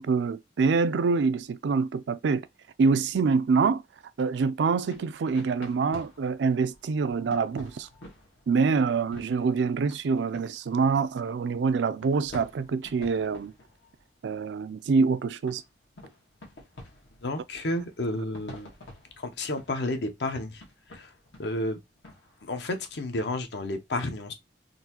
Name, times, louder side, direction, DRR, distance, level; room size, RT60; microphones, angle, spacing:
voice 1, 0.0-2.5 2.8-3.8 4.2-7.9 8.5-13.5 14.2-15.6, right 5 dB, 75° right, 0.4 m, -25 dB
sound 1, 4.6-11.5 12.0-14.1 14.6-15.0 15.4-22.6, left 1 dB, 85° left, 1.4 m, -50 dB
voice 2, 17.2-18.7 19.2-20.6 20.9-21.1 21.4-21.8 22.4-24.3, left 1 dB, 65° left, 0.7 m, -31 dB
3.9 x 2.6 x 2.8 m
head